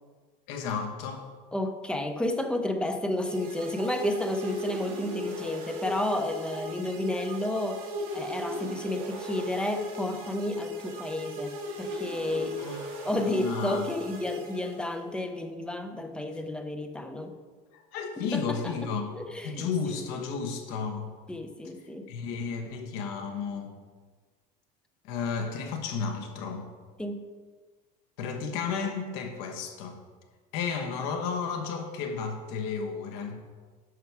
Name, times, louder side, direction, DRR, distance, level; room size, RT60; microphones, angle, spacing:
voice 1, 0.5-1.3 12.6-13.8 17.7-19.1 19.4-21.1 22.1-23.8 25.0-26.7 28.2-30.0 30.5-33.4, left 5 dB, 55° left, 4 dB, 1.2 m, -33 dB
voice 2, 1.5-7.8 8.1-12.6 13.0-17.4 18.2-18.7 19.1-19.7 21.3-22.1 27.0-27.2, left 1 dB, 5° left, 7 dB, 0.5 m, -32 dB
sound 1, 3.3-15.1, left 1 dB, 45° right, 2.2 m, -36 dB
11.0 x 5.9 x 4.7 m, 1.5 s
cardioid pair, 165°, 20 cm